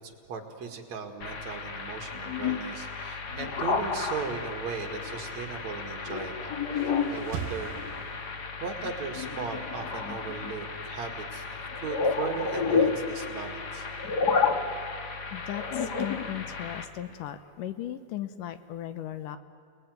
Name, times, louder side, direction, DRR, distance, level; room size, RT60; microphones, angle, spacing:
voice 1, 0.0-7.8 8.6-13.9, right 5 dB, 55° right, 5 dB, 3.0 m, -38 dB
sound 1, 1.2-16.8, left 5 dB, 45° left, 1.3 m, -31 dB
sound 2, 6.5-8.7, right 9 dB, 85° right, 2.7 m, -41 dB
voice 2, 15.3-19.4, left 12 dB, 75° left, 12 dB, 2.3 m, -37 dB
29.0 x 19.5 x 9.4 m, 2.5 s
omnidirectional pair, 4.1 m